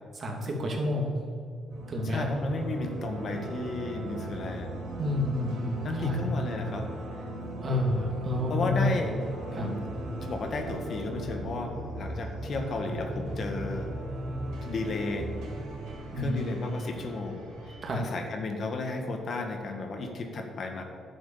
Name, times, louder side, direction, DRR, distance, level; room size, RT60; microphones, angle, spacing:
voice 1, 0.2-1.2 1.9-2.2 5.0-6.2 7.6-8.9 9.5-9.7 16.1-16.4 17.8-18.0, left 2 dB, 45° right, 1 dB, 2.6 m, -29 dB
sound 1, 1.7-18.1, right 1 dB, 90° right, 3.4 m, -38 dB
voice 2, 2.0-4.8 5.8-6.9 8.5-9.1 9.6-9.9 10.2-13.9 14.6-15.3 16.2-20.8, left 3 dB, 55° left, 4 dB, 1.7 m, -33 dB
10.5 x 7.7 x 7.2 m, 2.3 s
cardioid pair, 90°, 0 cm